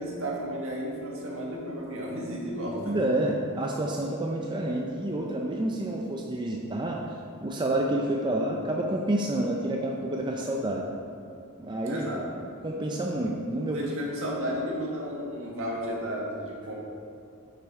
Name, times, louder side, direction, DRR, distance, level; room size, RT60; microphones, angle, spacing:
voice 1, 0.0-3.0 11.8-12.3 13.7-16.7, equal, 65° right, -3 dB, 1.6 m, -33 dB
voice 2, 2.8-7.2 7.4-10.9 11.6-12.1 12.6-13.8, right 1 dB, 20° right, 0 dB, 0.5 m, -29 dB
6.7 x 6.2 x 4.6 m, 2.6 s
head